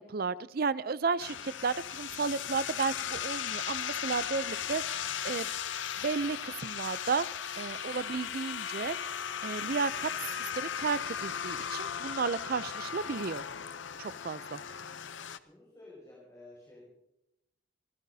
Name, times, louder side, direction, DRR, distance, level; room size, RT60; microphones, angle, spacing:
voice 1, 0.0-5.5 6.0-7.3 7.6-9.2 9.4-10.1 10.4-13.4 14.0-14.6, right 5 dB, 50° right, 17 dB, 0.5 m, -33 dB
sound 1, 1.2-15.4, left 8 dB, 80° left, 0.7 m, -37 dB
voice 2, 14.6-16.9, left 2 dB, 20° left, -6 dB, 5.6 m, -55 dB
28.5 x 15.0 x 2.8 m, 0.84 s
head